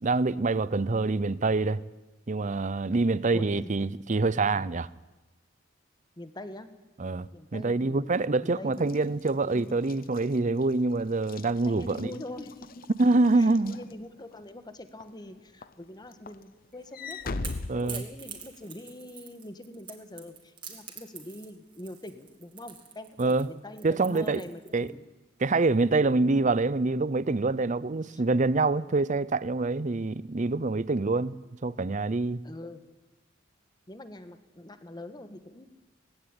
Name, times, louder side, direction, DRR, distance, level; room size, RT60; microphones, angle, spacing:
voice 1, 0.0-1.8 2.3-4.9 7.0-12.1 13.0-13.8 17.7-18.0 23.2-23.5 23.8-24.4 24.7-24.9 25.4-32.4, right 3 dB, 40° right, 0.6 m, -26 dB
voice 2, 3.3-3.7 6.2-6.7 7.3-8.1 8.4-9.0 9.4-9.8 11.7-12.9 13.3-17.4 17.7-25.0 26.2-26.5 28.1-28.2 32.4-32.8 33.9-35.7, left 1 dB, 20° left, 1.4 m, -44 dB
Walk footsteps / Slam, 8.8-14.5 15.0-15.3 15.6-18.6, left 3 dB, 50° left, 0.8 m, -41 dB
Crackle / Crack, 16.7-24.9, right 6 dB, 25° right, 2.9 m, -45 dB
18.0 x 16.0 x 9.9 m
head